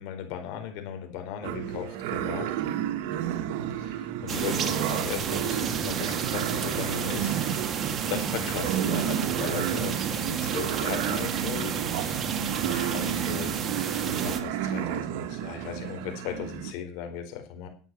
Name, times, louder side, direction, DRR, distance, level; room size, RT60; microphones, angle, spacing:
voice 1, 0.0-2.5 3.8-7.4 7.7-12.3 12.6-17.7, left 9 dB, 65° left, 5 dB, 4.5 m, -37 dB
sound 1, 1.4-16.7, right 10 dB, 75° right, 1.7 m, -31 dB
sound 2, 4.3-14.4, right 7 dB, 35° right, 1.9 m, -32 dB
11.5 x 9.1 x 7.7 m, 0.41 s
supercardioid pair, 125°, 0 cm